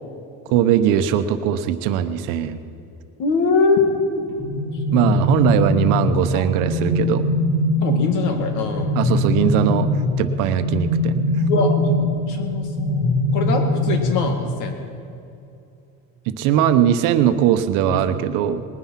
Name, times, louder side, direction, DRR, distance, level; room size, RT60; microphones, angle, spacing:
voice 1, 0.5-2.6 4.9-7.3 8.9-9.9 10.2-11.2 16.3-18.6, right 10 dB, 75° right, 10 dB, 1.0 m, -20 dB
voice 2, 3.2-4.3 4.9-5.4 7.8-9.0 11.5-12.0 12.3-14.8 17.9-18.0, left 4 dB, 65° left, 4 dB, 2.1 m, -23 dB
sound 1, 4.3-14.8, left 1 dB, 35° left, 4.4 m, -22 dB
20.0 x 9.7 x 5.8 m, 2.6 s
cardioid pair, 160°, 33 cm